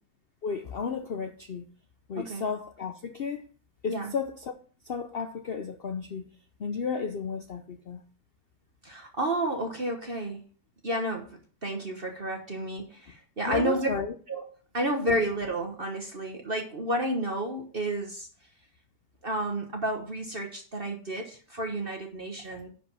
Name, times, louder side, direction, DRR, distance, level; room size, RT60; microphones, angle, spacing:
voice 1, 0.4-1.7 2.1-3.5 3.8-4.6 4.8-6.3 6.6-8.0 13.5-14.1, left 6 dB, 80° left, 8 dB, 0.5 m, -33 dB
voice 2, 8.8-10.4 10.8-11.2 11.6-13.9 14.3-14.4 14.7-18.3 19.2-22.7, right 1 dB, 35° right, 3 dB, 1.3 m, -31 dB
10.5 x 5.1 x 5.6 m, 0.42 s
omnidirectional pair, 1.9 m